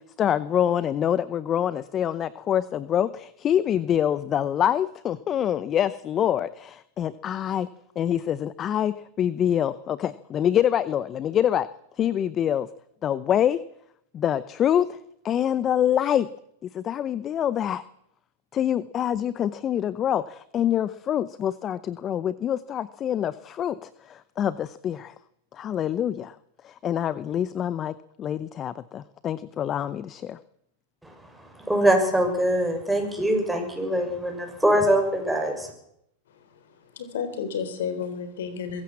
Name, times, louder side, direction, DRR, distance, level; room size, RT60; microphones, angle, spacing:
voice 1, 0.0-7.7 8.0-11.7 12.0-12.7 13.0-13.6 14.1-15.0 15.2-16.3 16.7-17.8 18.5-25.1 25.5-26.3 26.6-30.4, left 10 dB, 30° left, 17 dB, 0.8 m, -25 dB
voice 2, 31.0-35.7, right 1 dB, 5° right, 2 dB, 6.8 m, -23 dB
voice 3, 36.3-38.8, left 6 dB, 75° left, 11 dB, 3.7 m, -32 dB
23.0 x 15.5 x 7.5 m, 0.76 s
hypercardioid pair, 110°, 0 cm